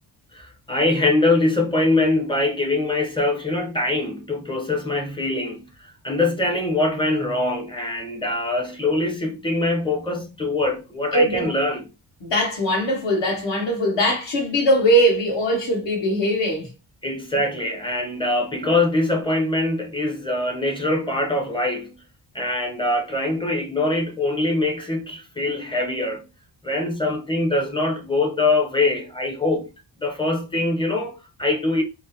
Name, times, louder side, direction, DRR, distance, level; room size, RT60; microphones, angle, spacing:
voice 1, 0.3-11.9 17.0-22.0 22.3-26.3 26.6-29.7 30.0-31.8, left 2 dB, 10° left, 0.6 m, -23 dB
voice 2, 11.1-11.5 12.2-16.7, equal, 70° left, 1.5 m, -21 dB
3.6 x 2.0 x 2.7 m
wide cardioid pair, 155°, 45 cm